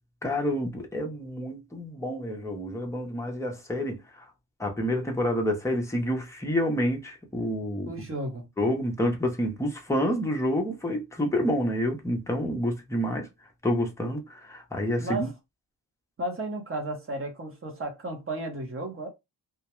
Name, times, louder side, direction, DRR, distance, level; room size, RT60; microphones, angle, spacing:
voice 1, 0.2-4.3 4.6-7.9 8.6-13.3 13.6-15.3, equal, 5° left, 0.5 m, -28 dB
voice 2, 7.9-8.5 15.0-15.3 16.2-19.1, right 1 dB, 30° right, 0.7 m, -33 dB
2.3 x 2.1 x 2.9 m
wide cardioid pair, 165°, 41 cm